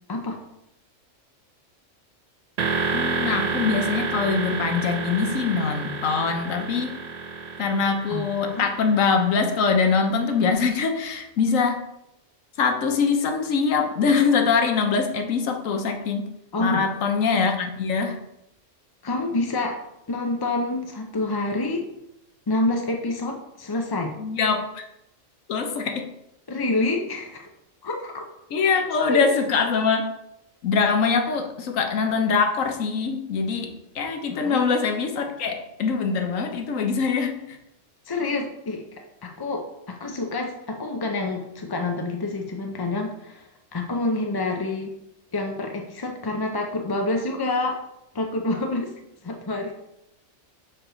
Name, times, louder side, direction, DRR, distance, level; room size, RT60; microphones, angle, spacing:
voice 1, 0.1-0.4 8.1-8.6 16.5-16.9 19.0-19.8 20.1-21.9 22.5-24.2 26.5-27.5 27.8-28.3 28.6-28.7 29.1-29.2 34.3-34.6 38.1-44.9 45.3-47.8 48.1-49.0 49.2-49.7, left 2 dB, 35° left, 2 dB, 0.3 m, -28 dB
sound 1, 2.6-10.4, right 4 dB, 50° right, 0.5 m, -30 dB
voice 2, 2.9-7.0 7.6-11.9 12.6-16.3 16.6-18.2 24.2-24.9 25.5-26.1 28.5-30.1 30.6-37.6, left 5 dB, 85° left, 4 dB, 1.2 m, -23 dB
6.6 x 4.5 x 3.9 m, 0.84 s
omnidirectional pair, 1.3 m